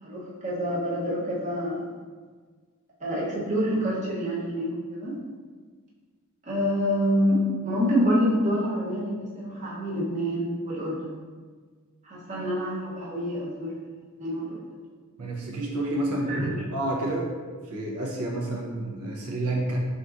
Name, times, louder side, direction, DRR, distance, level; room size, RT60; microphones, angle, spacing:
voice 1, 0.0-1.9 3.0-5.2 6.4-11.2 12.0-14.7 16.3-16.5, equal, 35° right, -5 dB, 0.8 m, -27 dB
voice 2, 15.2-16.4 16.7-17.3 17.7-19.8, right 1 dB, 75° right, -2 dB, 0.6 m, -29 dB
3.9 x 3.8 x 2.4 m, 1.5 s
head